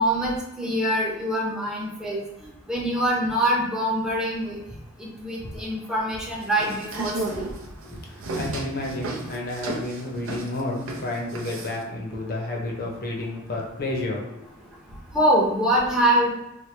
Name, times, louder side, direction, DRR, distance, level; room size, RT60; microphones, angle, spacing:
voice 1, 0.0-2.2 2.7-4.6 5.0-7.5 15.1-16.3, right 1 dB, 5° right, -5 dB, 0.6 m, -24 dB
sound 1, 6.4-11.8, right 2 dB, 70° right, 0.5 m, -33 dB
voice 2, 7.9-14.4, left 2 dB, 45° left, -1 dB, 0.7 m, -31 dB
3.0 x 2.1 x 3.2 m, 0.90 s
head